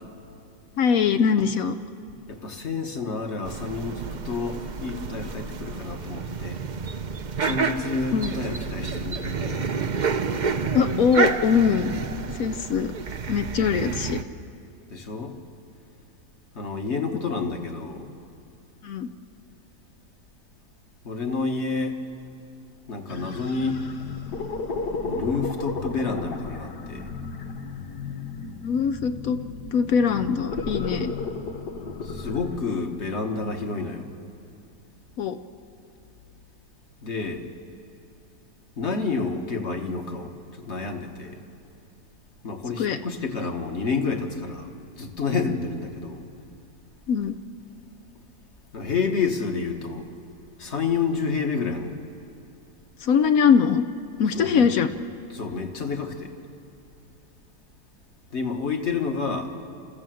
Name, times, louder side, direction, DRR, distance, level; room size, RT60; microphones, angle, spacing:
voice 1, 0.8-1.7 8.1-8.3 10.7-11.9 12.3-12.9 13.3-14.2 18.8-19.1 28.6-29.4 29.7-31.1 35.2-35.4 42.8-43.0 47.1-47.4 53.0-53.8 54.2-54.9, left 6 dB, 65° left, 9 dB, 1.0 m, -22 dB
voice 2, 2.3-6.6 7.4-9.7 14.9-15.3 16.5-18.1 21.0-22.0 22.9-23.8 25.0-27.1 32.0-34.1 37.0-37.4 38.8-41.4 42.4-46.2 48.7-50.1 50.6-52.0 54.3-54.7 55.3-56.3 58.3-59.5, left 4 dB, 45° left, 4 dB, 1.6 m, -29 dB
sound 1, 3.4-14.2, right 5 dB, 50° right, 0.5 m, -29 dB
sound 2, 23.1-32.6, left 4 dB, 90° left, 1.9 m, -34 dB
28.5 x 14.5 x 7.7 m, 2.5 s
omnidirectional pair, 1.7 m